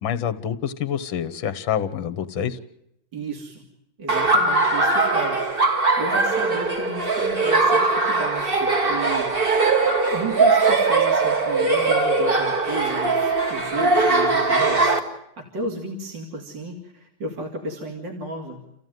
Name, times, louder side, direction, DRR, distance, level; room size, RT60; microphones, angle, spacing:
voice 1, 0.0-2.6, left 9 dB, 70° left, 12 dB, 1.9 m, -27 dB
voice 2, 3.1-3.6 4.0-5.4 6.0-9.3 10.1-15.0 15.4-18.6, right 2 dB, 55° right, 2 dB, 3.5 m, -33 dB
Laughter, 4.1-15.0, right 3 dB, 25° right, 2.0 m, -20 dB
29.0 x 15.5 x 9.3 m, 0.80 s
omnidirectional pair, 2.3 m